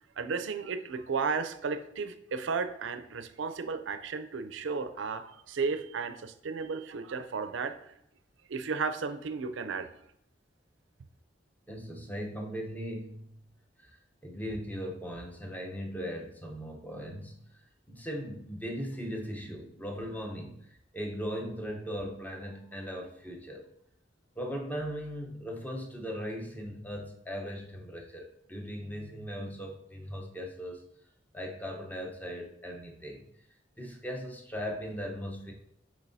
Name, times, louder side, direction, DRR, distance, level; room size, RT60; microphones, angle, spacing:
voice 1, 0.2-7.9 8.5-9.9, right 5 dB, 80° right, 10 dB, 0.5 m, -34 dB
voice 2, 11.7-13.3 13.8-23.6 24.4-30.8 31.3-33.3 33.8-35.5, equal, 10° left, 1 dB, 0.8 m, -38 dB
7.2 x 5.1 x 2.7 m, 0.74 s
head